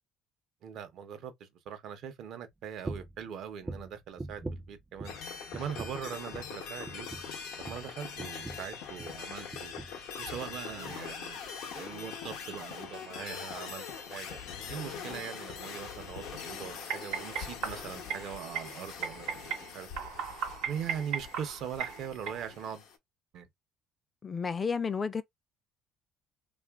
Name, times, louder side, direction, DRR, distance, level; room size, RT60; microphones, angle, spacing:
voice 1, 0.6-5.1 5.5-7.1 7.6-9.7 10.2-11.4 11.7-14.4 14.7-19.3 19.7-19.9 20.7-22.9 23.3-23.5, right 8 dB, 65° right, 0.7 m, -41 dB
sound 1, 2.8-3.2 3.6-5.3 5.5-6.1 6.3-6.6 6.9-9.2 9.5-10.0 10.3-10.5 10.9-11.0, right 2 dB, 20° right, 0.5 m, -42 dB
sound 2, 5.0-23.0, left 6 dB, 80° left, 0.7 m, -43 dB
sound 3, 15.0-22.7, right 7 dB, 85° right, 1.0 m, -39 dB
voice 2, 24.2-25.2, left 5 dB, 30° left, 0.4 m, -31 dB
2.9 x 2.4 x 2.3 m
supercardioid pair, 85°, 0 cm